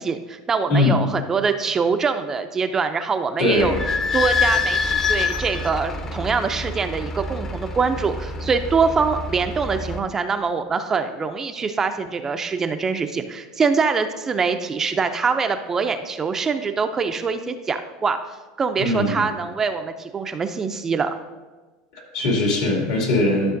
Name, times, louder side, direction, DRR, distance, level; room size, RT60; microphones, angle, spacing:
voice 1, 0.0-3.8 4.1-18.2 18.6-21.2, right 5 dB, 20° right, 7 dB, 0.4 m, -24 dB
voice 2, 0.7-1.0 3.4-3.8 18.8-19.2 21.9-23.6, left 2 dB, 70° left, 0 dB, 2.5 m, -21 dB
Idling / Squeak, 3.6-10.0, left 4 dB, 25° left, 0.7 m, -26 dB
12.0 x 6.3 x 2.6 m, 1.3 s
supercardioid pair, 125°, 2 cm